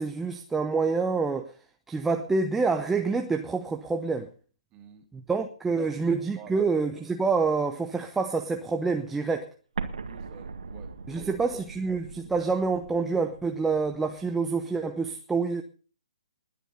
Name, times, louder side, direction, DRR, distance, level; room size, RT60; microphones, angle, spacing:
voice 1, 0.0-1.6 1.9-4.3 5.1-9.5 11.1-15.6, right 4 dB, 5° right, 0.9 m, -27 dB
voice 2, 4.7-5.2 5.7-6.6 6.9-7.0 10.1-11.3 11.8-12.0, right 9 dB, 20° right, 2.9 m, -49 dB
Explosion, 9.8-14.5, right 4 dB, 65° right, 1.9 m, -40 dB
20.5 x 9.8 x 5.5 m
figure-of-eight pair, 135°, 4 cm